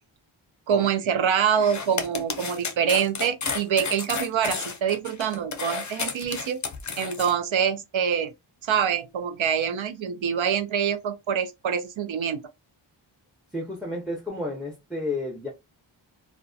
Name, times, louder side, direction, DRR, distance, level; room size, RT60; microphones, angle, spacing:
voice 1, 0.7-6.6 7.0-8.3 8.6-12.4, right 8 dB, 70° right, 0.6 m, -25 dB
sound 1, 1.5-7.3, left 5 dB, 40° left, 0.5 m, -32 dB
voice 2, 13.5-15.5, left 2 dB, ahead, 0.7 m, -31 dB
2.6 x 2.1 x 2.3 m
wide cardioid pair, 80°, 49 cm